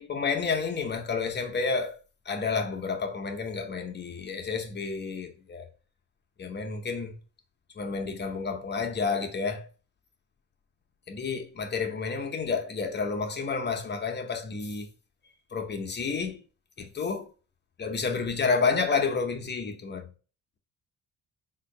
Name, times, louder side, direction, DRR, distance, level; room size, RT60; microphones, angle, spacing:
voice 1, 0.0-2.0 2.3-5.7 6.4-7.1 7.8-9.7 11.1-14.9 15.5-16.4 16.8-17.3 17.8-20.1, left 5 dB, 35° left, 0.8 m, -30 dB
3.8 x 2.6 x 4.6 m
cardioid pair, 90°, 30 cm